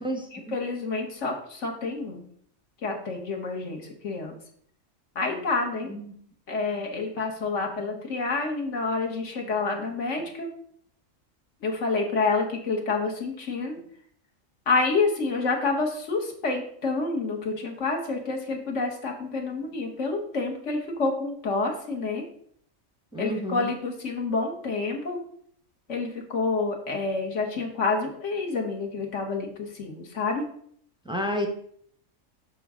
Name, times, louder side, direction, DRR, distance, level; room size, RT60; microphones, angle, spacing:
voice 1, 0.3-2.2 2.8-4.4 5.1-5.9 6.5-10.5 11.6-13.8 14.7-22.2 23.2-25.2 25.9-30.4, left 3 dB, 65° left, 1 dB, 1.6 m, -28 dB
voice 2, 23.1-23.7 31.1-31.5, equal, 5° right, 2 dB, 0.6 m, -30 dB
6.2 x 6.0 x 3.6 m, 0.62 s
omnidirectional pair, 1.4 m